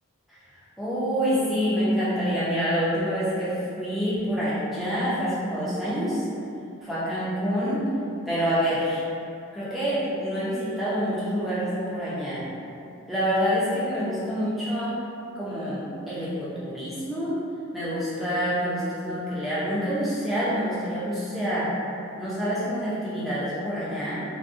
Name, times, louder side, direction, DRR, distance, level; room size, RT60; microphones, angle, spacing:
voice 1, 0.8-6.2 6.8-7.8 8.3-9.0 9.5-12.4 13.1-15.0 15.3-17.4 17.7-21.7 22.2-24.2, equal, ahead, -11 dB, 0.6 m, -27 dB
3.6 x 2.2 x 2.5 m, 2.6 s
head